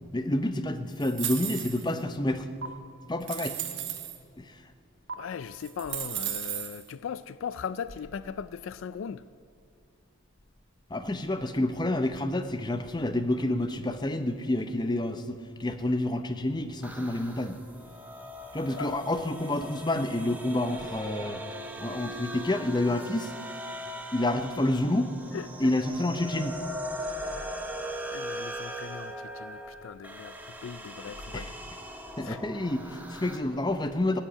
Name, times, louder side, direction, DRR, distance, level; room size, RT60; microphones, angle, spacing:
voice 1, 0.1-2.5 3.1-3.6 4.4-4.6 10.9-17.6 18.5-21.4 21.8-23.3 24.1-25.1 25.6-26.6 31.3-31.5 32.2-34.2, left 1 dB, 20° left, 0.6 m, -29 dB
sound 1, 1.0-2.0 2.6-2.7 3.2-4.2 5.1-5.2 5.6-6.8, right 11 dB, 55° right, 1.2 m, -34 dB
voice 2, 5.1-9.2 18.8-19.0 25.3-25.7 27.0-27.6 28.1-30.4 30.6-31.5 32.2-32.4, left 7 dB, 65° left, 0.3 m, -39 dB
sound 2, 16.8-33.4, equal, 10° right, 0.9 m, -40 dB
16.0 x 8.9 x 8.5 m
head